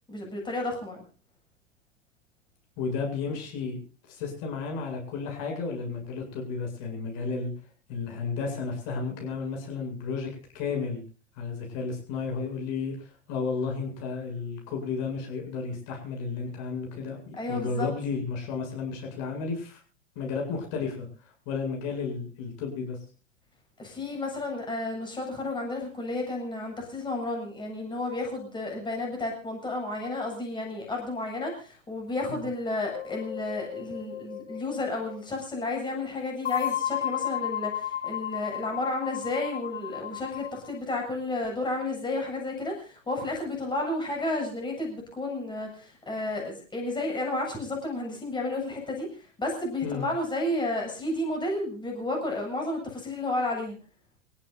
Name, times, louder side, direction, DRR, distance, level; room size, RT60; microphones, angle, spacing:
voice 1, 0.1-1.0 17.4-17.9 23.8-53.8, left 2 dB, 10° left, 1 dB, 7.6 m, -32 dB
voice 2, 2.8-3.8 4.1-7.5 7.9-11.0 11.4-19.8 20.1-23.0 32.3-32.4 49.8-50.0, left 4 dB, 45° left, 2 dB, 7.9 m, -33 dB
sound 1, 32.9-35.2 36.4-40.7, left 10 dB, 65° left, 3.3 m, -33 dB
28.5 x 16.0 x 2.6 m, 0.38 s
figure-of-eight pair, 95°, 37 cm